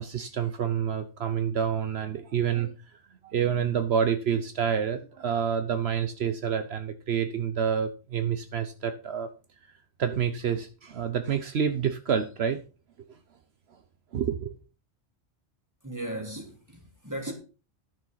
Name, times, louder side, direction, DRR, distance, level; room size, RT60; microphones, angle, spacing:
voice 1, 0.0-2.7 3.2-9.3 10.0-12.6 13.0-13.1 14.1-14.6, right 7 dB, 70° right, 1.1 m, -28 dB
voice 2, 15.8-17.3, right 1 dB, 15° right, 3.2 m, -36 dB
12.0 x 6.7 x 5.6 m
omnidirectional pair, 1.1 m